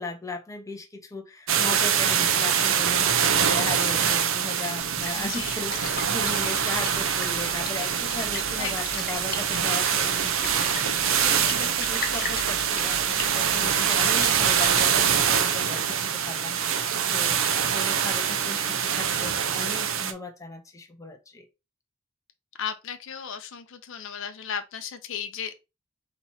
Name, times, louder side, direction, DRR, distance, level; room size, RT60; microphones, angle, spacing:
voice 1, 0.0-21.5, left 2 dB, 15° left, 0.7 m, -37 dB
sound 1, 1.5-20.1, right 8 dB, 65° right, 0.6 m, -24 dB
Splash splatter, 4.8-15.4, left 4 dB, 45° left, 0.9 m, -39 dB
voice 2, 5.1-5.6 8.5-9.0 22.6-25.7, left 8 dB, 65° left, 0.6 m, -35 dB
4.2 x 3.0 x 4.1 m
head